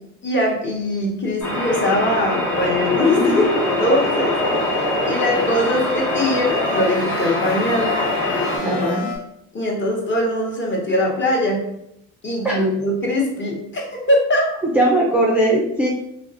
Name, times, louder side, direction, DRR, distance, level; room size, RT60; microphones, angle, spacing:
voice 1, 0.2-3.5 3.8-4.4 5.0-7.9 8.6-8.9 9.5-11.6 12.2-14.4, left 1 dB, 30° left, -2 dB, 0.9 m, -21 dB
sound 1, 1.4-8.6, left 1 dB, 55° left, 1.1 m, -23 dB
sound 2, 2.6-9.2, left 2 dB, 90° left, 0.7 m, -29 dB
voice 2, 8.7-9.1 12.4-12.6 14.6-15.9, right 1 dB, 5° right, -2 dB, 0.3 m, -19 dB
2.5 x 2.0 x 2.7 m, 0.80 s
supercardioid pair, 70°, 36 cm